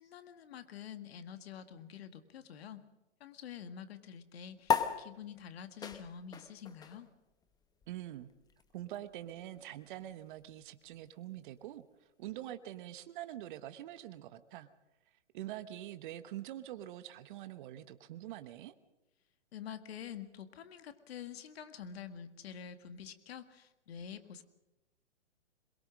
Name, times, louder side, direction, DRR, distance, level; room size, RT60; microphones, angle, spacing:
voice 1, 0.0-2.8 3.2-7.1 19.5-24.4, left 8 dB, 60° left, 10 dB, 1.8 m, -47 dB
sound 1, 4.6-11.5, left 7 dB, 10° left, 1.0 m, -39 dB
voice 2, 7.9-8.3 8.7-14.7 15.3-18.7, right 13 dB, 45° right, 12 dB, 1.1 m, -45 dB
22.0 x 21.5 x 6.3 m, 0.98 s
hypercardioid pair, 130°, 35 cm